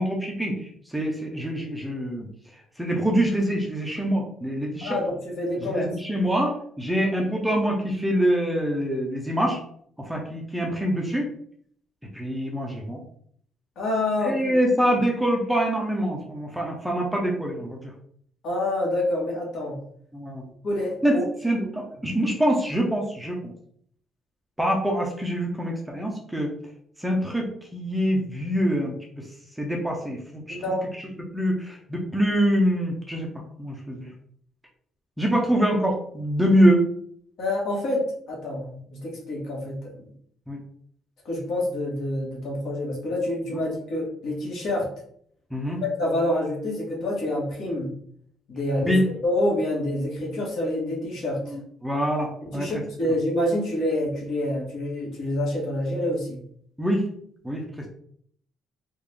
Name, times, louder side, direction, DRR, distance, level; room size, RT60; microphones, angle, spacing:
voice 1, 0.0-2.3 2.8-5.0 5.6-9.6 10.0-11.3 12.1-13.0 14.2-17.9 20.1-20.4 21.0-23.5 24.6-26.5 27.0-29.3 29.6-30.6 31.0-33.3 33.6-34.1 35.2-36.9 40.5-40.6 45.5-45.8 48.8-49.0 51.4-52.7 56.8-57.0 57.4-57.6, equal, 5° right, -1 dB, 0.5 m, -25 dB
voice 2, 4.8-5.9 13.8-14.6 18.4-19.8 20.6-21.2 30.5-30.8 37.4-40.0 41.2-44.9 45.8-47.9 48.5-51.4 52.4-56.4, left 1 dB, 60° left, -3 dB, 1.5 m, -27 dB
3.6 x 2.4 x 3.2 m, 0.63 s
cardioid pair, 160°, 0 cm